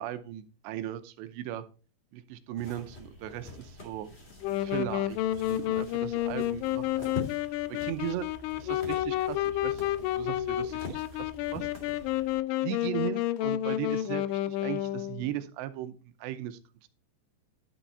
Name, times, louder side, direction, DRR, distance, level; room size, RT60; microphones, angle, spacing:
voice 1, 0.0-1.6 2.1-4.1 4.6-7.1 7.3-7.5 7.8-8.3 8.6-11.7 12.0-12.3 12.6-16.9, right 13 dB, 80° right, 11 dB, 2.9 m, -38 dB
sound 1, 2.6-12.4, left 3 dB, 20° left, 1.8 m, -45 dB
Wind instrument woodwind instrument, 4.4-15.3, left 13 dB, 90° left, 3.0 m, -30 dB
12.0 x 5.9 x 4.1 m, 0.35 s
omnidirectional pair, 5.3 m